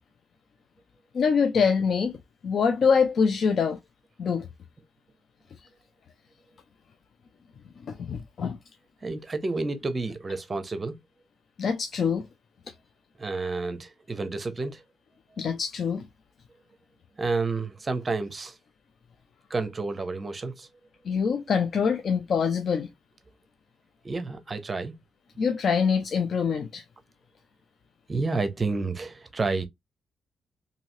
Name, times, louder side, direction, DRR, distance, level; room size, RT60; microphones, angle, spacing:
voice 1, 1.1-2.2 2.4-3.8 4.2-4.5 7.8-8.6 11.6-12.3 15.4-16.1 21.1-22.9 25.4-26.8, left 6 dB, 55° left, 0.4 m, -24 dB
voice 2, 9.0-11.0 13.2-14.8 17.2-18.6 19.5-20.7 24.0-25.0 28.1-29.6, right 3 dB, 25° right, 0.6 m, -30 dB
3.0 x 2.7 x 2.6 m
cardioid pair, 120°, 0 cm